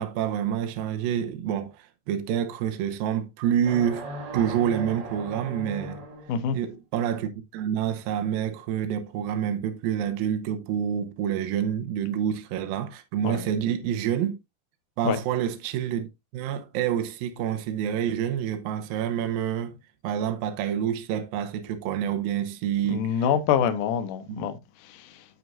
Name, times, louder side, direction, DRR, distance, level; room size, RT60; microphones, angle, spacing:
voice 1, 0.0-6.0 6.5-14.4 15.0-16.1 16.3-19.8 20.0-23.3 24.3-24.5, right 9 dB, 75° right, 2.5 m, -28 dB
sound 1, 3.6-6.5, right 1 dB, 55° right, 1.2 m, -38 dB
voice 2, 22.9-24.5, left 8 dB, 70° left, 2.2 m, -25 dB
9.4 x 7.6 x 2.6 m
omnidirectional pair, 4.6 m